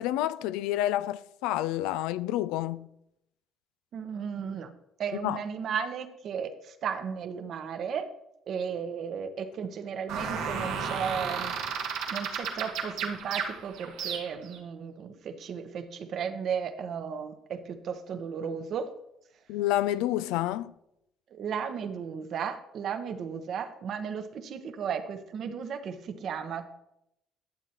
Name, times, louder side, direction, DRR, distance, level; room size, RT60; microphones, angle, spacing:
voice 1, 0.0-2.9 5.2-5.4 19.5-20.7, left 14 dB, 85° left, 0.3 m, -29 dB
voice 2, 3.9-4.7 5.0-8.1 8.5-11.5 12.1-18.9 21.3-26.7, right 7 dB, 60° right, 1.0 m, -35 dB
sound 1, 10.1-14.6, right 6 dB, 85° right, 1.7 m, -33 dB
11.5 x 7.4 x 3.0 m
supercardioid pair, 75°, 0 cm